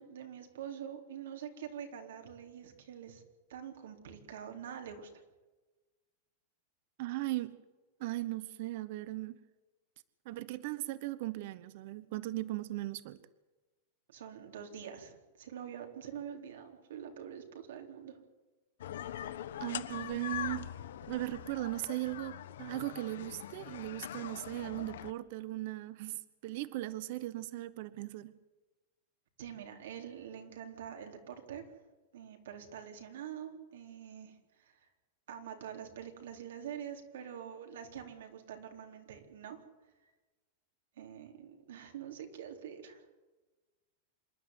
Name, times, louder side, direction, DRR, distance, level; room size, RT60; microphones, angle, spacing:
voice 1, 0.0-3.2 3.5-5.1 14.1-18.2 29.4-31.7 32.1-34.9 35.3-39.6 40.0-40.1 41.0-43.0, right 8 dB, 85° right, 4 dB, 3.9 m, -45 dB
voice 2, 7.0-7.5 8.0-9.4 10.2-13.2 19.1-19.3 19.6-20.7 21.0-28.3, right 17 dB, 45° right, 16 dB, 1.0 m, -38 dB
sound 1, 18.8-25.1, left 11 dB, 80° left, 1.1 m, -43 dB
27.0 x 11.5 x 9.6 m, 1.2 s
supercardioid pair, 170°, 0 cm